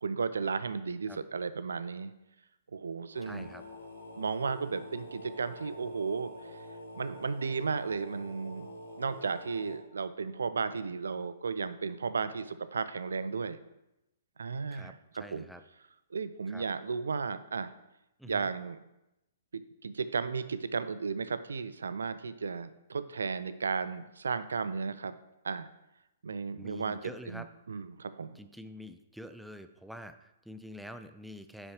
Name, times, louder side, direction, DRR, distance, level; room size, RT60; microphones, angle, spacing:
voice 1, 0.0-2.1 2.7-3.5 4.2-6.6 7.0-8.7 9.0-13.6 14.4-14.9 15.3-15.4 16.1-17.7 18.2-18.8 19.8-25.1 25.4-25.7 26.2-27.0 27.3-28.4, right 5 dB, 70° right, 14 dB, 0.4 m, -34 dB
sound 1, 3.1-9.8, left 1 dB, 75° left, 1.1 m, -46 dB
voice 2, 3.2-3.6 14.7-15.6 16.5-16.7 18.2-18.5 26.6-27.5 28.3-31.7, equal, ahead, 9 dB, 0.4 m, -47 dB
9.5 x 5.5 x 3.0 m, 0.90 s
figure-of-eight pair, 115°, 0 cm